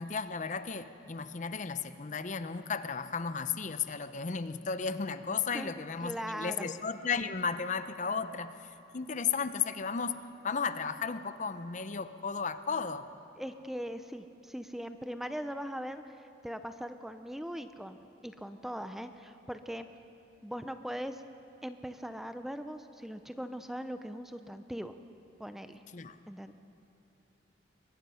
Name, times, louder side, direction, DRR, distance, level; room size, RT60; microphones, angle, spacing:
voice 1, 0.0-13.0 25.9-26.2, left 5 dB, 40° left, 11 dB, 0.6 m, -34 dB
voice 2, 6.0-6.7 13.4-19.9 20.4-21.2 21.6-25.0 25.4-25.8 26.3-26.5, equal, ahead, 9 dB, 0.5 m, -40 dB
23.0 x 20.0 x 5.6 m, 2.8 s
head